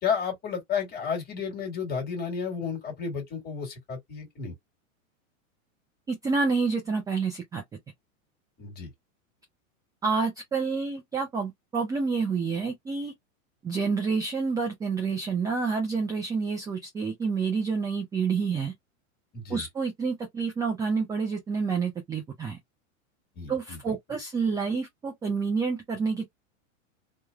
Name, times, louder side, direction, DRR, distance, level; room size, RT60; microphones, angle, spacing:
voice 1, 0.0-4.5 8.6-8.9 19.3-19.7 23.4-23.9, left 6 dB, 25° left, 1.7 m, -32 dB
voice 2, 6.1-7.6 10.0-13.1 13.6-18.7 19.5-22.6 23.5-26.3, right 5 dB, 10° right, 0.4 m, -28 dB
3.2 x 2.2 x 2.2 m
supercardioid pair, 130°, 41 cm